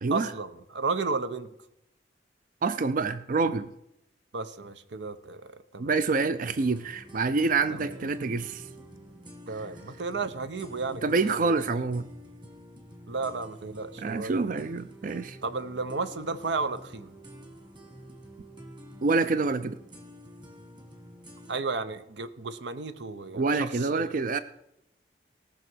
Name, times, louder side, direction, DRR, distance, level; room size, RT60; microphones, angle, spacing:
voice 1, 0.1-1.5 4.3-5.9 7.7-8.0 9.5-11.5 13.1-14.6 15.4-17.1 21.5-24.2, right 4 dB, 85° right, 12 dB, 0.7 m, -33 dB
voice 2, 2.6-3.7 5.8-8.7 11.0-12.0 14.0-15.4 19.0-19.8 23.3-24.4, right 4 dB, 50° right, 13 dB, 0.4 m, -27 dB
sound 1, 6.2-21.6, equal, 25° right, 1.8 m, -48 dB
18.0 x 6.0 x 6.2 m, 0.82 s
head